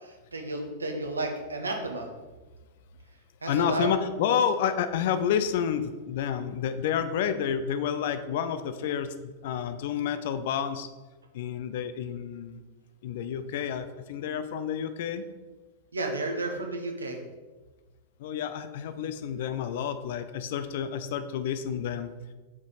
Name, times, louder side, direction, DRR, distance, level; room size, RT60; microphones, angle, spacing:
voice 1, 0.0-2.1 3.4-3.9 15.9-17.2, right 2 dB, 75° right, 3 dB, 0.9 m, -32 dB
voice 2, 3.5-10.9 11.3-12.6 13.0-15.2 18.2-22.3, left 8 dB, 55° left, 11 dB, 0.5 m, -29 dB
7.0 x 5.0 x 4.0 m, 1.3 s
figure-of-eight pair, 90°, 0 cm